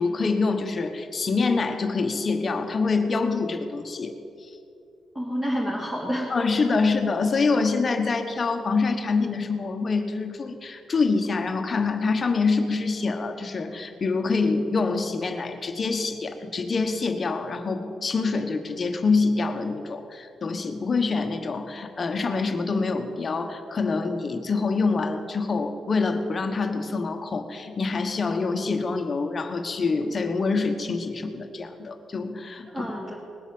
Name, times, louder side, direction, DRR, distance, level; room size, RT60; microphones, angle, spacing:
voice 1, 0.0-4.1 6.3-32.9, left 4 dB, 30° left, 6 dB, 1.2 m, -26 dB
voice 2, 5.1-6.5 32.7-33.2, equal, 10° right, -5 dB, 2.0 m, -29 dB
20.0 x 8.1 x 7.8 m, 2.7 s
wide cardioid pair, 155°, 0 cm